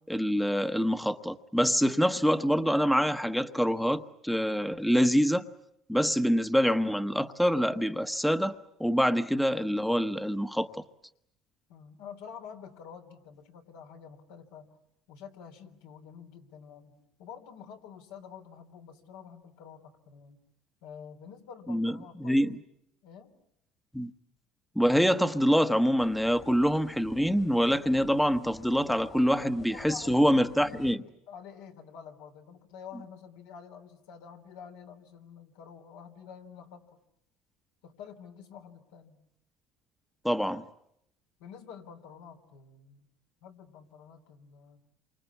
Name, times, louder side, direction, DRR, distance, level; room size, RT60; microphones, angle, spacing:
voice 1, 0.1-5.4 5.9-10.8 21.7-21.9 22.2-22.6 23.9-24.1 24.7-31.0 40.2-40.6, equal, ahead, 10 dB, 1.1 m, -25 dB
voice 2, 11.7-14.8 15.1-20.4 20.8-22.5 23.0-23.3 29.0-29.2 29.6-37.0 37.8-39.2 41.4-43.1 43.4-44.8, left 7 dB, 90° left, 3 dB, 3.4 m, -48 dB
sound 1, 26.0-31.0, left 4 dB, 35° left, 1.4 m, -52 dB
28.0 x 25.0 x 8.4 m, 0.77 s
supercardioid pair, 100°, 0 cm